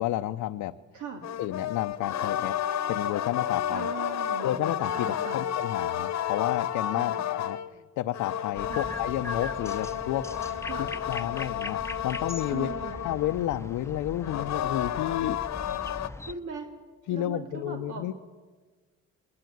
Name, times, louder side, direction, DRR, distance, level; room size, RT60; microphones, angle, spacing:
voice 1, 0.0-0.8 1.4-2.6 2.9-3.9 4.4-10.3 10.8-12.7 13.0-15.4 17.1-18.1, left 13 dB, 90° left, 6 dB, 0.7 m, -31 dB
voice 2, 0.9-1.2 3.7-4.6 5.0-5.4 6.9-7.2 8.7-8.9 10.7-10.9 12.5-13.0 16.3-16.7 17.1-18.1, right 6 dB, 80° right, 3 dB, 2.7 m, -39 dB
sound 1, 1.2-7.7 8.1-13.6 14.2-16.1, left 10 dB, 60° left, 1.0 m, -31 dB
sound 2, 8.5-16.3, left 2 dB, 10° left, 0.8 m, -40 dB
21.5 x 21.0 x 9.2 m, 1.4 s
cardioid pair, 90°, 30 cm